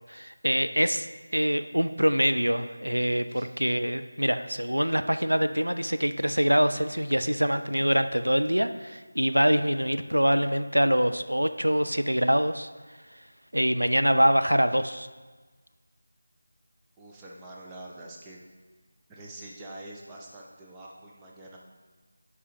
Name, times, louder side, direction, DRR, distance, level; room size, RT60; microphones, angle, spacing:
voice 1, 0.1-1.1 1.3-12.7 13.5-15.1, equal, 85° right, 10 dB, 0.3 m, -24 dB
voice 2, 17.0-18.4 19.1-21.6, right 1 dB, 10° right, -4 dB, 0.6 m, -45 dB
10.5 x 4.7 x 3.0 m, 1.3 s
figure-of-eight pair, 165°, 0 cm